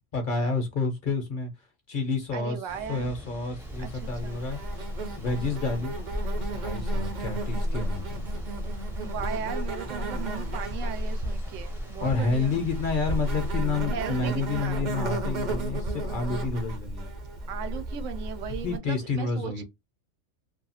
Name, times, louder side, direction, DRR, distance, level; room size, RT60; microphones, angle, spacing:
voice 1, 0.1-1.5 1.9-2.6 2.9-4.6 5.1-5.9 6.5-8.4 12.0-17.1 18.6-19.6, left 4 dB, 50° left, 0.7 m, -29 dB
voice 2, 2.3-3.1 3.8-4.4 9.0-12.6 13.9-14.9 17.5-19.6, right 8 dB, 85° right, 0.9 m, -37 dB
Thunder / Rain, 2.7-13.5, equal, 5° right, 0.5 m, -46 dB
Insect, 3.6-18.8, right 1 dB, 50° right, 0.6 m, -32 dB
2.6 x 2.3 x 2.7 m
omnidirectional pair, 1.3 m